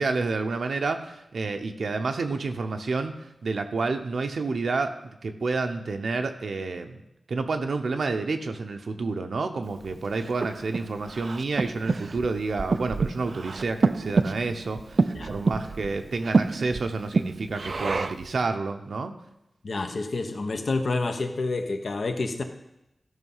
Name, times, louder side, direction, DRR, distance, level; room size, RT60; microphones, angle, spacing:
voice 1, 0.0-3.1 3.4-4.9 5.2-7.0 7.3-19.1, right 3 dB, 75° right, 5 dB, 0.8 m, -29 dB
Breathing, 9.8-18.3, right 3 dB, 55° right, 0.4 m, -28 dB
voice 2, 19.6-22.4, left 3 dB, 65° left, 6 dB, 1.0 m, -28 dB
13.0 x 5.6 x 5.6 m, 0.87 s
wide cardioid pair, 95°, 0 cm